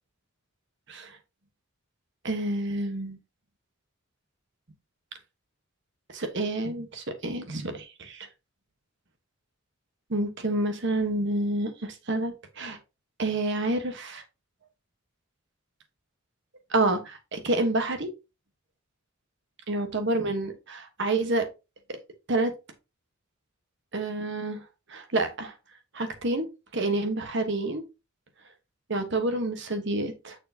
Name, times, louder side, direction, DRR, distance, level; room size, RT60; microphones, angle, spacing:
voice 1, 2.2-3.2 6.1-8.3 10.1-12.8 13.2-14.2 16.7-18.1 19.7-21.5 22.3-22.5 23.9-24.6 24.9-25.5 25.9-26.5 26.7-27.8 28.9-30.4, right 2 dB, 60° right, 1.3 m, -28 dB
6.5 x 6.4 x 2.8 m
head